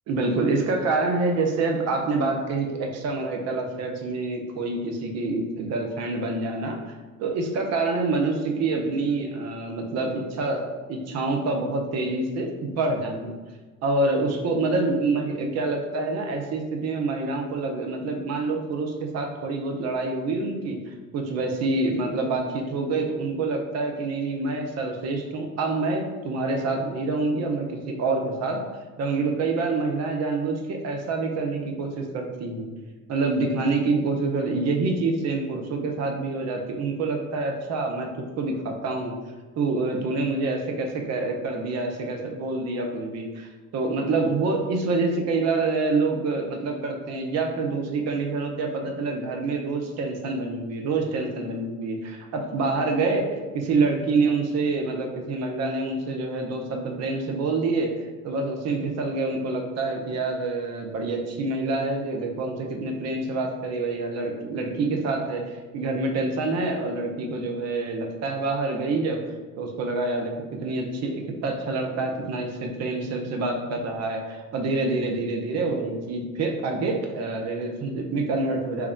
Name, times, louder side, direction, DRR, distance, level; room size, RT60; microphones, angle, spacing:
voice 1, 0.1-6.9 7.2-13.4 13.8-20.8 21.1-28.6 29.0-32.7 33.1-39.1 39.6-57.9 58.2-65.4 65.7-69.2 69.6-78.9, right 3 dB, 35° right, 2 dB, 0.8 m, -27 dB
3.3 x 3.1 x 3.5 m, 1.3 s
figure-of-eight pair, 70°, 43 cm